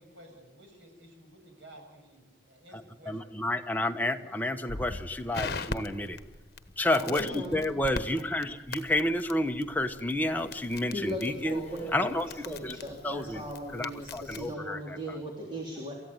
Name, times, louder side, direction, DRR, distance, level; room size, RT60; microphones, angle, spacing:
voice 1, 0.0-3.3 6.9-7.4, right 1 dB, 90° right, 4 dB, 6.5 m, -51 dB
voice 2, 2.7-6.2 6.8-11.6 11.9-12.8 13.0-13.4 13.7-15.2, left 1 dB, 10° left, 5 dB, 1.0 m, -30 dB
Crackle, 4.7-14.5, left 3 dB, 55° left, 1.2 m, -42 dB
voice 3, 6.9-7.6 10.9-12.2 12.5-15.9, equal, 25° right, 0 dB, 3.4 m, -37 dB
28.5 x 14.5 x 9.5 m, 1.3 s
head